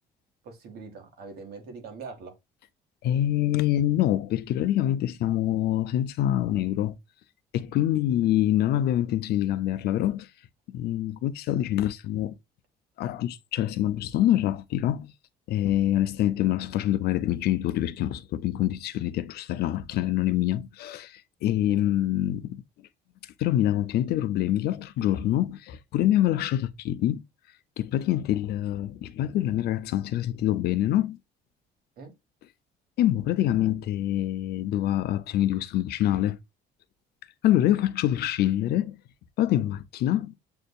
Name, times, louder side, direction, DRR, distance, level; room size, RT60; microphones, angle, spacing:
voice 1, 0.4-2.3 8.2-8.3 21.4-22.0 32.0-32.1, right 4 dB, 70° right, 1.7 m, -43 dB
voice 2, 3.0-6.9 7.5-10.3 10.7-12.3 13.0-15.1 15.5-22.6 23.4-27.2 27.8-31.2 33.0-36.4 37.4-39.0 39.4-40.3, left 12 dB, 70° left, 0.5 m, -25 dB
7.7 x 2.6 x 2.3 m
cardioid pair, 110°, 17 cm